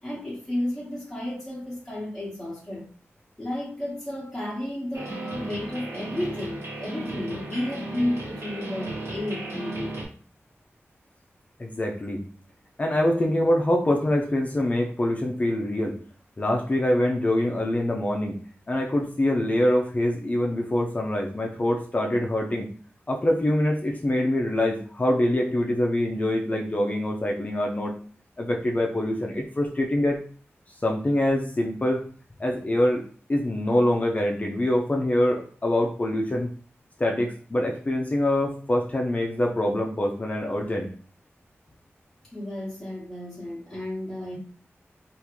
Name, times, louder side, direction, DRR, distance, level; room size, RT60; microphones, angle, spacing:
voice 1, 0.0-2.8 3.4-9.9 42.3-44.4, left 1 dB, 10° left, -6 dB, 1.0 m, -32 dB
sound 1, 4.9-10.0, right 2 dB, 70° right, 1.2 m, -35 dB
voice 2, 11.6-12.2 12.8-16.0 16.4-18.4 18.7-22.7 23.1-27.9 28.4-30.2 30.8-32.0 32.4-33.0 33.3-36.5 37.0-40.9, left 1 dB, 30° left, 0 dB, 0.5 m, -24 dB
3.5 x 2.5 x 3.0 m, 0.44 s
wide cardioid pair, 100°, 5 cm